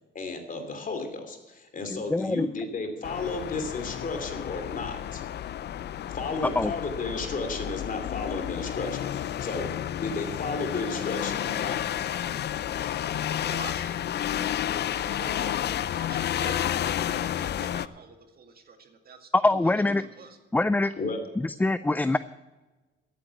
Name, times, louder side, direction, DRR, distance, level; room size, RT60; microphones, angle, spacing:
voice 1, 0.1-5.3 6.1-11.9 21.0-21.2, left 3 dB, 40° left, 6 dB, 2.9 m, -33 dB
voice 2, 1.9-2.5 6.6-6.7 19.3-20.0 20.5-20.9 21.4-22.2, left 2 dB, 10° left, 15 dB, 0.4 m, -24 dB
sound 1, 3.0-17.9, left 10 dB, 55° left, 0.6 m, -31 dB
voice 3, 13.4-19.3 20.0-20.4, right 4 dB, 50° right, 6 dB, 2.1 m, -46 dB
14.5 x 8.6 x 7.1 m, 1.2 s
cardioid pair, 90°, 20 cm